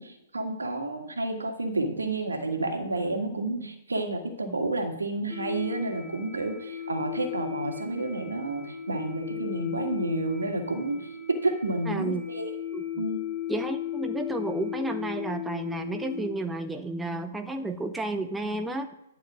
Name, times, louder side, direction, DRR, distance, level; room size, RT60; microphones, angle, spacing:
voice 1, 0.0-12.5 13.0-13.2, right 2 dB, 80° right, 4 dB, 1.8 m, -30 dB
sound 1, 5.3-16.3, left 9 dB, 15° left, 1.3 m, -36 dB
voice 2, 11.9-12.2 12.7-13.0 13.5-18.9, right 2 dB, 5° right, 6 dB, 0.5 m, -32 dB
11.0 x 4.8 x 6.0 m, 0.89 s
figure-of-eight pair, 120°, 0 cm